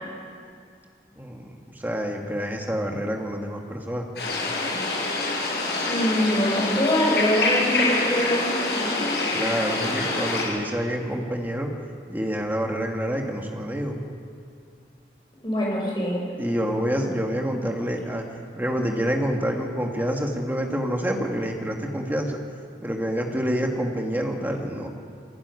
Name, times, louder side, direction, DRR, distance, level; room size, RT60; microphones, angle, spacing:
voice 1, 1.2-4.1 9.3-11.7 12.1-14.0 16.4-18.2 18.6-22.4 22.8-24.9, equal, 10° right, 1 dB, 2.3 m, -27 dB
sound 1, 4.2-10.4, left 3 dB, 65° left, 7.7 m, -26 dB
voice 2, 5.9-9.0 15.4-16.2, equal, 25° left, -3 dB, 6.4 m, -24 dB
22.0 x 17.0 x 9.9 m, 2.3 s
head